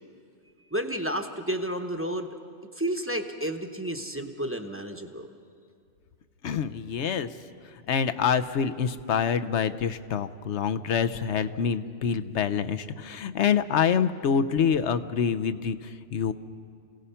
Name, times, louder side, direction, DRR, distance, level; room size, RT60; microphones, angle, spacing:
voice 1, 0.7-2.3 2.7-5.3, right 1 dB, 10° right, 5 dB, 0.9 m, -31 dB
voice 2, 6.4-7.3 7.9-16.3, left 7 dB, 65° left, 10 dB, 1.0 m, -26 dB
29.0 x 17.0 x 5.7 m, 2.3 s
omnidirectional pair, 1.4 m